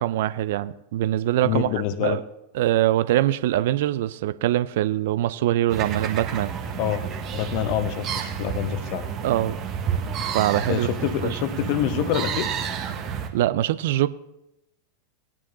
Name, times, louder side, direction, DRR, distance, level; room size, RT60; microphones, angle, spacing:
voice 1, 0.0-1.7 2.0-2.2 2.6-6.5 9.2-9.6 10.3-10.9 11.3-11.4 13.3-14.1, right 13 dB, 55° right, 0.4 m, -23 dB
voice 2, 1.4-2.2 6.8-7.0 7.3-9.1 10.6-12.5, left 10 dB, 45° left, 1.0 m, -26 dB
sound 1, 5.7-13.3, right 7 dB, 35° right, 1.6 m, -30 dB
19.0 x 9.7 x 2.8 m
figure-of-eight pair, 90°, 0 cm